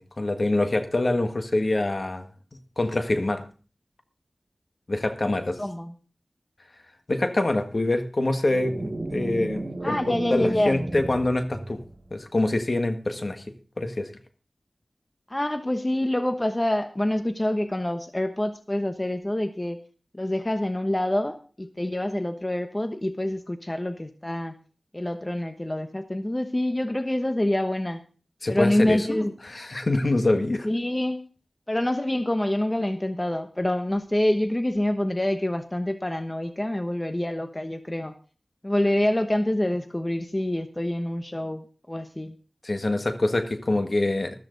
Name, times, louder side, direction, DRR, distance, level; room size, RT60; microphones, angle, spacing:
voice 1, 0.0-2.3 2.8-3.4 4.9-5.6 7.1-11.8 12.1-13.4 13.8-14.1 28.4-30.7 42.6-44.4, left 2 dB, 55° left, 7 dB, 1.6 m, -25 dB
voice 2, 5.6-5.9 9.8-10.8 15.3-19.8 20.1-24.5 24.9-28.0 28.5-29.3 30.6-31.2 31.7-38.1 38.6-42.3, left 1 dB, 25° left, 8 dB, 1.1 m, -26 dB
sound 1, 8.5-12.1, right 2 dB, 45° right, 1.7 m, -34 dB
13.5 x 13.5 x 4.0 m, 0.37 s
wide cardioid pair, 55°, 0 cm